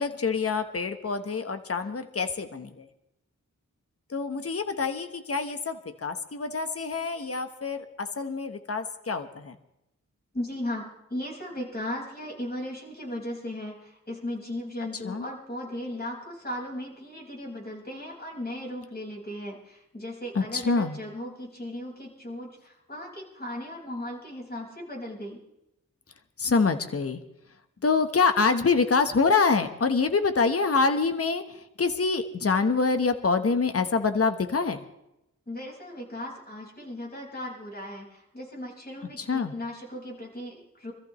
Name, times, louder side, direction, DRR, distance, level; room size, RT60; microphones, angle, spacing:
voice 1, 0.0-2.8 4.1-9.5 15.1-15.2 20.3-21.0 26.4-27.2 27.8-31.4 31.8-34.8 39.2-39.5, left 4 dB, 45° left, 8 dB, 1.2 m, -26 dB
voice 2, 10.3-25.4 35.5-40.9, left 1 dB, 30° left, -2 dB, 5.5 m, -37 dB
25.5 x 14.0 x 3.2 m, 0.86 s
wide cardioid pair, 70°, 32 cm